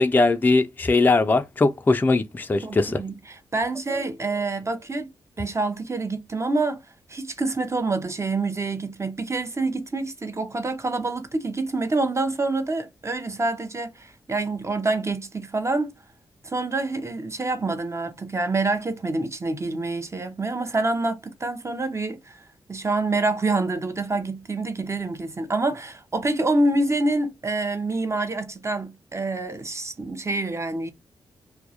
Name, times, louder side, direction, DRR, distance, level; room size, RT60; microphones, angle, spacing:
voice 1, 0.0-3.0, left 3 dB, 20° left, 0.3 m, -20 dB
voice 2, 2.6-5.1 5.4-6.8 7.1-15.9 16.4-22.4 22.7-30.9, right 2 dB, 30° right, 0.6 m, -27 dB
2.2 x 2.0 x 2.7 m
supercardioid pair, 45°, 10 cm